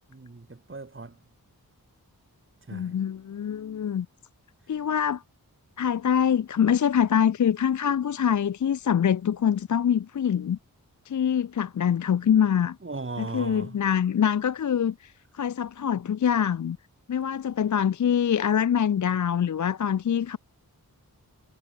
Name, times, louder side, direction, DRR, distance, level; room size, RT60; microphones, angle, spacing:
voice 1, 0.1-1.2 2.7-2.9 12.8-13.8, right 3 dB, 30° right, 2.4 m, -37 dB
voice 2, 2.7-4.1 4.7-5.2 5.8-10.6 11.1-12.8 13.2-16.8 17.1-20.4, left 8 dB, 50° left, 0.5 m, -24 dB
wide cardioid pair, 70°, 38 cm